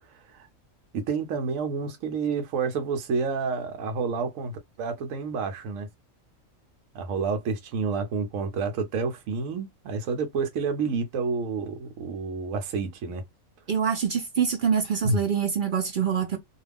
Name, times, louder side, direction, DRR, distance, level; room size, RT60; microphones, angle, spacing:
voice 1, 0.1-0.5 0.9-5.9 6.9-13.2 15.0-15.2, right 4 dB, 80° right, 1.0 m, -29 dB
voice 2, 13.7-16.4, right 7 dB, 65° right, 0.5 m, -25 dB
2.4 x 2.3 x 3.3 m
omnidirectional pair, 1.4 m